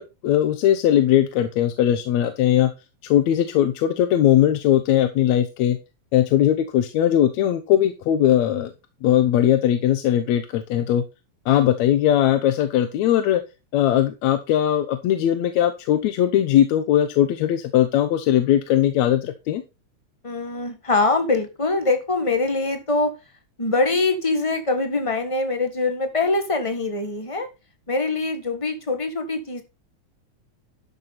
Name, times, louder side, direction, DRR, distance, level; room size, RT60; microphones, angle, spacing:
voice 1, 0.0-2.7 3.0-5.8 6.1-8.7 9.0-11.0 11.5-13.4 13.7-19.6, left 11 dB, 75° left, 10 dB, 2.1 m, -19 dB
voice 2, 20.2-23.1 23.6-27.5 27.9-29.6, left 3 dB, 40° left, 7 dB, 0.4 m, -23 dB
12.0 x 6.9 x 4.2 m, 0.27 s
omnidirectional pair, 3.4 m